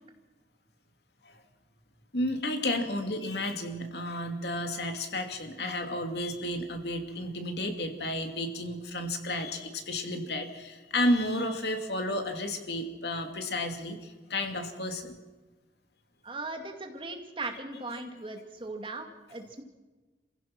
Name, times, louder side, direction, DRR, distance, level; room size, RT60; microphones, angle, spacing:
voice 1, 2.1-15.1, left 1 dB, 70° left, 5 dB, 2.6 m, -32 dB
voice 2, 16.2-19.6, right 3 dB, 30° right, 4 dB, 2.2 m, -38 dB
28.0 x 15.5 x 6.0 m, 1.2 s
head